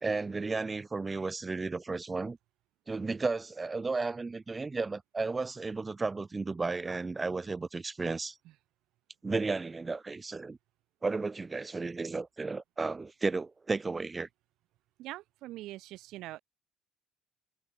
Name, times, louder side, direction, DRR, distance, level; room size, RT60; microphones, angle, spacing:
voice 1, 0.0-2.4 2.9-8.4 9.2-10.6 11.0-14.3, right 3 dB, 15° right, 1.5 m, -33 dB
voice 2, 15.0-16.4, right 16 dB, 65° right, 1.6 m, -43 dB
cardioid pair, 165°, 0 cm